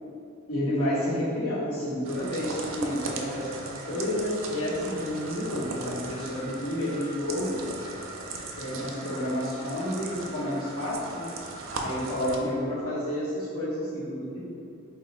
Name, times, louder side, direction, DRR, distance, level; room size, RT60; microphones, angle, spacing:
voice 1, 0.5-7.6 8.6-11.4 11.8-14.4, left 1 dB, 85° left, -9 dB, 1.2 m, -30 dB
sound 1, 2.0-12.4, right 2 dB, 65° right, 0.4 m, -38 dB
3.0 x 2.3 x 4.2 m, 2.6 s
head